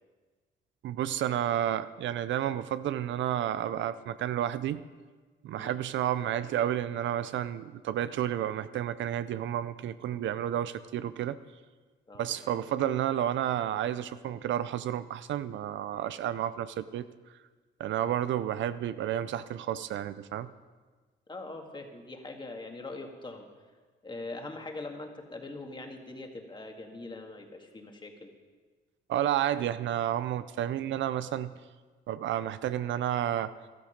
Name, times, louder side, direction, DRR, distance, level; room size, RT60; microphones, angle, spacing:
voice 1, 0.8-4.8 5.4-11.4 12.2-17.1 17.8-20.5 29.1-31.5 32.1-33.5, right 11 dB, 70° right, 14 dB, 0.5 m, -31 dB
voice 2, 12.1-12.6 21.3-23.5 24.0-28.3, left 2 dB, 25° left, 3 dB, 2.0 m, -42 dB
13.5 x 12.5 x 5.2 m, 1.4 s
cardioid pair, 90°, 20 cm